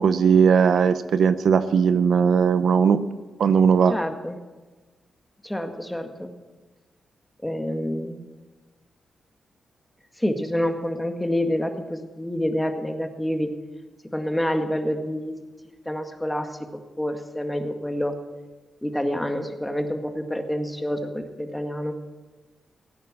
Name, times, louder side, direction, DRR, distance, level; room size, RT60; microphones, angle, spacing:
voice 1, 0.0-3.0 3.4-3.9, right 6 dB, 75° right, 12 dB, 0.6 m, -18 dB
voice 2, 3.9-4.4 5.4-6.3 7.4-8.2 10.2-13.5 14.1-15.3 15.9-16.5 17.0-18.1 18.8-21.9, equal, 10° left, 5 dB, 1.9 m, -27 dB
17.0 x 9.3 x 6.2 m, 1.3 s
cardioid pair, 65°, 0 cm